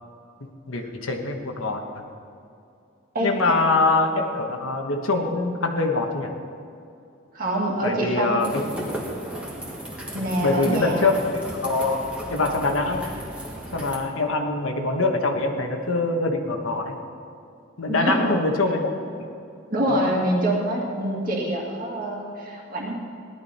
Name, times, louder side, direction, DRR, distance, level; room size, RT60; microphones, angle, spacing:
voice 1, 0.7-2.0 3.2-6.3 7.8-8.6 10.4-11.2 11.5-12.0 12.3-13.1 13.7-17.0 17.8-18.9 19.2-19.3 19.9-20.1, left 3 dB, 80° left, 3 dB, 1.3 m, -24 dB
voice 2, 3.1-3.5 7.3-8.5 10.1-11.2 17.9-18.3 19.7-22.9, right 1 dB, 40° right, -2 dB, 2.1 m, -25 dB
sound 1, 8.4-14.0, right 1 dB, 5° right, 1.6 m, -35 dB
17.0 x 11.5 x 4.3 m, 2.6 s
head